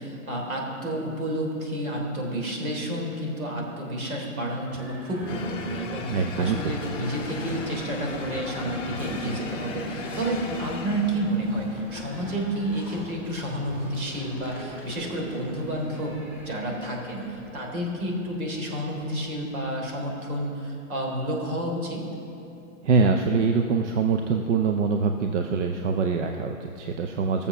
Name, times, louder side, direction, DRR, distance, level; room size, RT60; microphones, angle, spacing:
voice 1, 0.0-22.0, right 1 dB, 75° right, 0 dB, 3.4 m, -30 dB
Livestock farm animals working animals / Bell, 4.6-20.5, equal, 5° right, 2.5 m, -44 dB
sound 1, 5.3-11.6, left 3 dB, 10° left, 0.8 m, -36 dB
voice 2, 6.1-6.7 22.8-27.5, right 5 dB, 55° right, 4 dB, 0.8 m, -24 dB
17.5 x 7.0 x 6.0 m, 2.7 s
hypercardioid pair, 145°, 43 cm